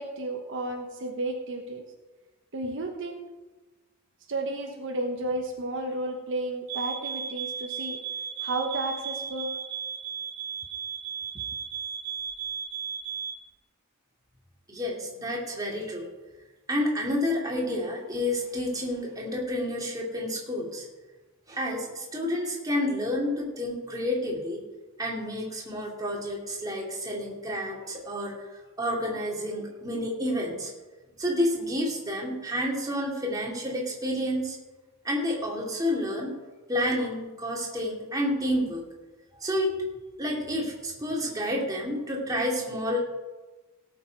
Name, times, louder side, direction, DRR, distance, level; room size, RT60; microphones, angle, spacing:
voice 1, 0.0-1.8 2.5-3.2 4.3-8.0 8.4-9.5, right 2 dB, 60° right, 2 dB, 1.1 m, -32 dB
sound 1, 6.7-13.4, right 7 dB, 85° right, 0.9 m, -35 dB
voice 2, 14.7-16.1 16.7-20.8 21.5-24.6 25.0-28.4 28.8-30.7 31.2-34.6 35.0-36.3 36.7-38.8 39.4-39.7 40.2-43.0, left 1 dB, 15° right, -3 dB, 2.5 m, -29 dB
17.5 x 7.2 x 4.7 m, 1.2 s
head